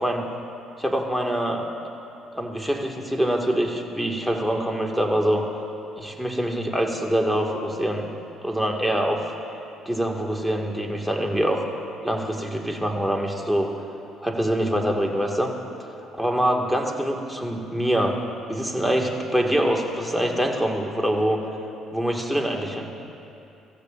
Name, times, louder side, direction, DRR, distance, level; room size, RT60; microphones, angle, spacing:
voice 1, 0.8-1.6 2.3-5.5 6.0-8.1 8.4-9.2 9.9-11.6 12.0-13.7 14.2-15.5 16.2-18.2 18.5-21.4 21.9-22.9, right 1 dB, 5° right, 1 dB, 2.1 m, -24 dB
25.0 x 14.5 x 2.6 m, 2.7 s
supercardioid pair, 65°, 0 cm